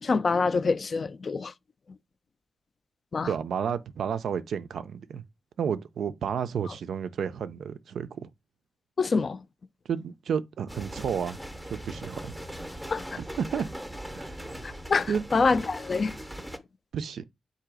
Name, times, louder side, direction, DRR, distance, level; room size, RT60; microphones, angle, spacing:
voice 1, 0.0-1.5 3.1-3.3 9.0-9.4 12.9-13.2 14.6-16.2, left 4 dB, 40° left, 0.3 m, -26 dB
voice 2, 3.3-5.2 5.6-8.3 9.9-11.4 11.6-12.3 13.2-13.7 14.1-14.4 15.1-15.2 16.9-17.2, right 7 dB, 75° right, 0.4 m, -31 dB
sound 1, 10.7-16.6, equal, ahead, 0.6 m, -40 dB
3.9 x 2.7 x 4.6 m
wide cardioid pair, 125°, 0 cm